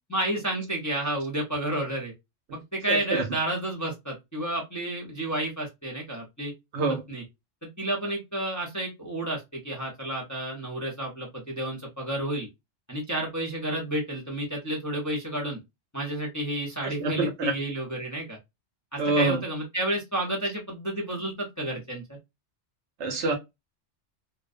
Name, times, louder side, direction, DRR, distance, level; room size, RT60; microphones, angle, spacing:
voice 1, 0.1-2.1 2.5-6.5 7.1-7.2 7.8-12.5 12.9-15.6 15.9-18.4 18.9-22.0, right 1 dB, 20° left, 0.6 m, -31 dB
voice 2, 2.9-3.2 6.7-7.0 16.8-17.5 19.0-19.4 23.0-23.4, right 3 dB, 65° right, 0.9 m, -26 dB
2.4 x 2.1 x 2.4 m
omnidirectional pair, 1.3 m